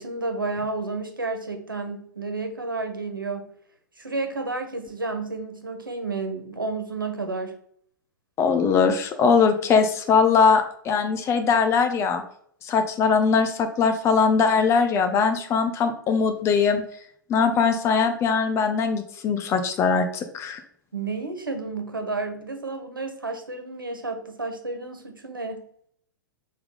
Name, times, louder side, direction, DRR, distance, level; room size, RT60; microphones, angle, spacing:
voice 1, 0.0-3.5 4.0-7.5 20.9-25.6, right 3 dB, 80° right, 6 dB, 1.3 m, -31 dB
voice 2, 8.4-12.2 12.6-16.8 17.3-20.6, left 5 dB, 25° left, 7 dB, 0.9 m, -21 dB
6.9 x 3.7 x 3.8 m, 0.62 s
figure-of-eight pair, 105°, 11 cm